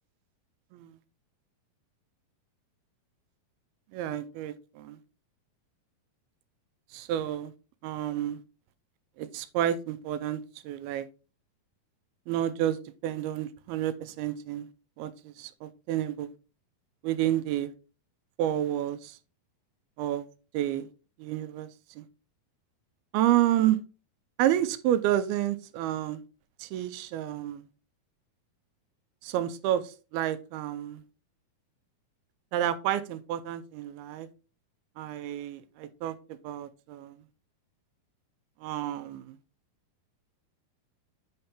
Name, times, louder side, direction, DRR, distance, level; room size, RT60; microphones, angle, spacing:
voice 1, 3.9-5.0 6.9-7.5 7.8-8.4 9.2-11.1 12.3-14.7 15.0-16.3 17.0-17.7 18.4-19.2 20.0-20.3 20.5-20.9 21.2-21.7 22.0-22.1 23.1-23.8 24.4-26.2 26.6-27.6 29.2-31.0 32.5-34.3 35.0-36.2 36.4-37.2 38.6-39.4, right 12 dB, 85° right, 12 dB, 2.5 m, -30 dB
8.6 x 4.3 x 3.4 m, 0.33 s
omnidirectional pair, 4.4 m